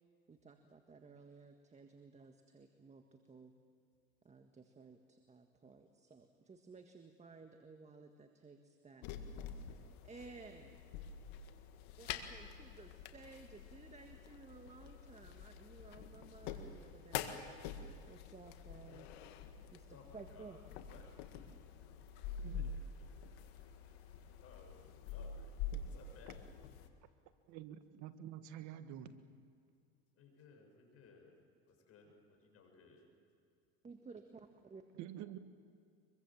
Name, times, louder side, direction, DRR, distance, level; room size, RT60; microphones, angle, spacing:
voice 1, 0.3-3.5 4.2-9.1 10.0-10.7 12.0-17.4 18.1-19.1 19.7-19.9 20.1-20.6 33.8-34.8, right 4 dB, 20° right, 6 dB, 1.7 m, -56 dB
sound 1, 9.0-26.9, left 7 dB, 75° left, 1.9 m, -47 dB
voice 2, 19.9-20.6 20.9-21.1 21.7-25.5 25.8-26.4 30.1-31.4 31.7-33.1, left 5 dB, 45° left, 3 dB, 7.0 m, -62 dB
voice 3, 27.5-29.2 35.0-35.4, right 11 dB, 60° right, 10 dB, 1.7 m, -48 dB
24.5 x 23.0 x 7.4 m, 2.4 s
supercardioid pair, 95°, 32 cm